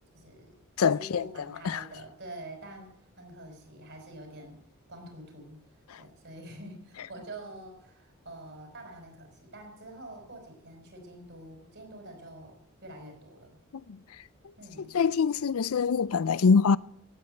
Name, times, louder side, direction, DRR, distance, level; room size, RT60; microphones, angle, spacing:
voice 1, 0.1-0.6 0.9-4.6 4.9-5.6 6.0-13.6 14.6-15.0, right 1 dB, 50° right, 4.9 m, -46 dB
voice 2, 0.8-1.3 1.6-1.8 5.9-6.0 13.7-14.0 14.9-16.8, left 5 dB, 80° left, 0.5 m, -24 dB
16.0 x 9.2 x 7.7 m
head